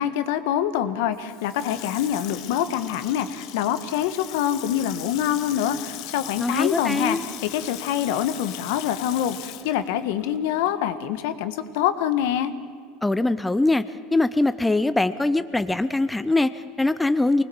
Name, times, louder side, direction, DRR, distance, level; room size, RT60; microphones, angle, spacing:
voice 1, 0.0-12.5, left 10 dB, 75° left, 11 dB, 1.4 m, -25 dB
Water tap faucet / Sink (filling or washing), 1.1-10.8 11.2-11.3, left 14 dB, 55° left, 1.1 m, -39 dB
voice 2, 6.4-7.2 13.0-13.8 14.1-17.4, left 2 dB, 5° left, 12 dB, 0.6 m, -22 dB
25.0 x 19.5 x 7.2 m, 2.1 s
supercardioid pair, 140°, 0 cm